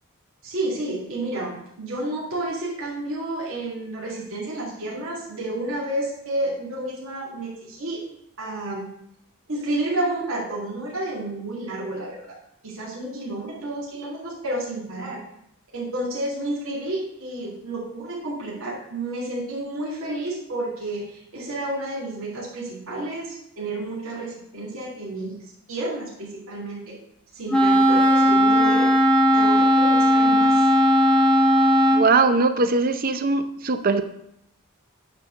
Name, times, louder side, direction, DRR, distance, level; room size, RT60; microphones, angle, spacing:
voice 1, 0.4-8.0 8.4-8.9 9.5-12.4 12.6-15.2 15.7-25.4 25.7-26.9 27.3-28.9 29.3-30.7, right 1 dB, 70° right, -5 dB, 2.5 m, -30 dB
Wind instrument woodwind instrument, 27.5-32.1, equal, 5° left, 0.9 m, -17 dB
voice 2, 31.9-34.0, right 3 dB, 40° right, 9 dB, 0.6 m, -20 dB
10.0 x 4.4 x 6.3 m, 0.77 s
head